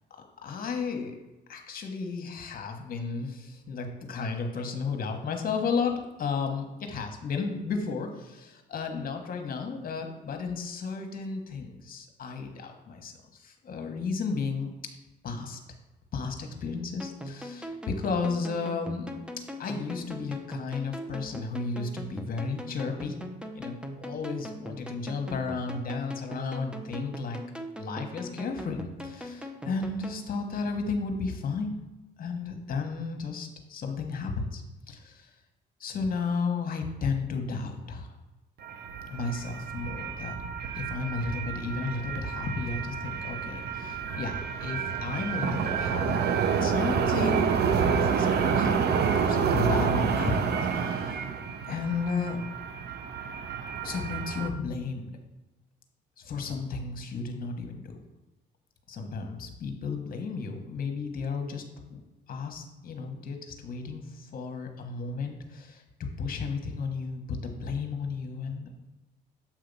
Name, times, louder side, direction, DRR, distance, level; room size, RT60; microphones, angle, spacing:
voice 1, 0.1-1.2 1.5-14.7 15.2-15.6 16.1-19.2 19.6-23.2 23.5-27.4 27.8-31.8 32.2-34.6 34.9-35.3 35.8-38.1 39.1-40.4 40.7-46.2 46.6-48.8 49.2-51.2 51.6-52.4 53.8-55.1 56.2-58.0 58.9-61.6 61.9-62.0 62.3-65.8 66.2-68.7, left 4 dB, 50° left, 5 dB, 1.1 m, -33 dB
sound 1, 17.0-30.2, equal, 5° right, 0.6 m, -40 dB
sound 2, 38.6-54.5, right 6 dB, 60° right, 0.6 m, -29 dB
7.4 x 2.9 x 5.3 m, 1.1 s
cardioid pair, 85°, 19 cm